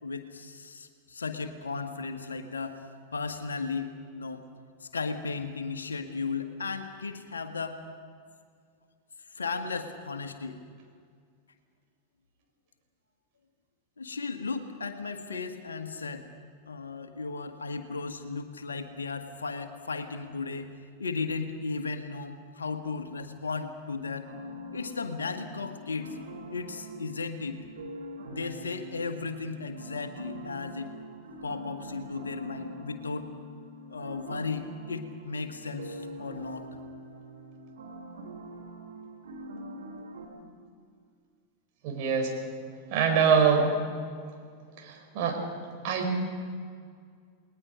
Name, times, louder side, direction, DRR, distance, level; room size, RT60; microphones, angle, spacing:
voice 1, 0.0-2.8 3.1-4.4 4.8-7.8 9.3-10.6 14.0-16.3 16.7-20.7 21.0-24.3 24.7-26.2 26.5-27.6 28.3-30.9 31.4-33.3 33.9-36.7, left 4 dB, 75° left, 7 dB, 1.6 m, -35 dB
sound 1, 24.3-40.2, right 1 dB, 65° right, 3.7 m, -44 dB
voice 2, 41.8-42.3 42.9-43.7 44.8-45.4 45.8-46.2, right 6 dB, 45° right, 2 dB, 4.6 m, -24 dB
29.5 x 20.5 x 5.2 m, 2.1 s
figure-of-eight pair, 90°, 0 cm